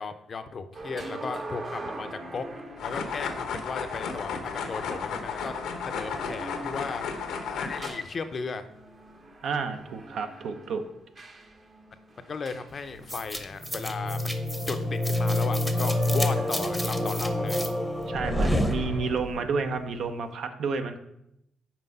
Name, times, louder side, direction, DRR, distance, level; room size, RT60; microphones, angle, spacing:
voice 1, 0.0-2.5 2.8-5.5 5.8-7.1 7.5-8.6 12.2-14.2 14.7-17.6, left 4 dB, 45° left, 9 dB, 0.6 m, -35 dB
sound 1, 0.7-13.5 15.3-15.4 15.7-17.5 18.2-18.4, right 2 dB, 40° right, 1.0 m, -43 dB
sound 2, 2.8-7.9, left 5 dB, 85° left, 0.9 m, -33 dB
voice 2, 9.4-10.8 18.1-21.0, right 4 dB, 70° right, 7 dB, 0.7 m, -30 dB
sound 3, 13.1-19.4, left 1 dB, 5° right, 0.8 m, -27 dB
5.9 x 4.6 x 5.4 m, 0.81 s
cardioid pair, 90°, 0 cm